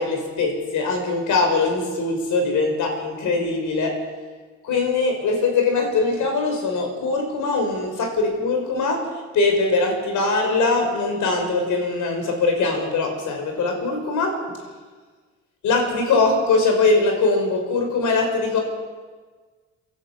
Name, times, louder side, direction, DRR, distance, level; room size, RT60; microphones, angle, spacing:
voice 1, 0.0-4.0 4.6-9.1 9.3-14.4 15.6-18.6, left 3 dB, 80° left, 3 dB, 5.9 m, -21 dB
27.0 x 11.5 x 8.4 m, 1.4 s
cardioid pair, 90°, 30 cm